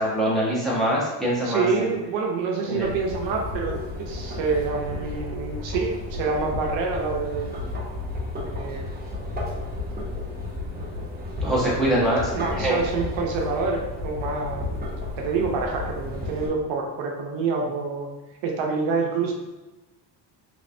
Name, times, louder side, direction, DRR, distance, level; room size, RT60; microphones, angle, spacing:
voice 1, 0.0-1.9 2.7-2.9 11.4-12.8, right 1 dB, ahead, -7 dB, 1.1 m, -24 dB
voice 2, 1.4-7.5 8.4-9.0 11.4-12.1 12.3-14.9 15.2-18.1 18.4-19.3, right 4 dB, 75° right, 1 dB, 0.8 m, -27 dB
sound 1, 2.8-16.5, left 2 dB, 20° right, 0.9 m, -33 dB
3.4 x 3.1 x 2.6 m, 1.1 s
cardioid pair, 120°, 44 cm